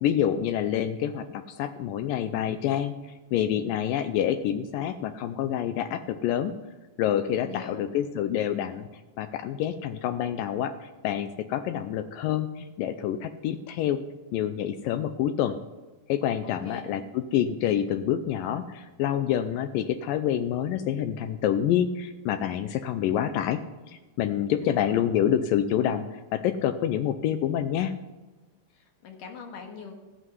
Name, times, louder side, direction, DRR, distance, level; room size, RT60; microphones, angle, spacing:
voice 1, 0.0-6.6 7.0-8.9 9.2-14.0 14.3-15.6 16.1-23.6 23.9-27.9, left 10 dB, 80° left, 10 dB, 2.1 m, -27 dB
voice 2, 7.4-7.9 16.4-16.8 24.6-25.1 28.7-29.9, left 7 dB, 65° left, 3 dB, 3.0 m, -41 dB
14.5 x 6.4 x 9.3 m, 1.2 s
omnidirectional pair, 4.3 m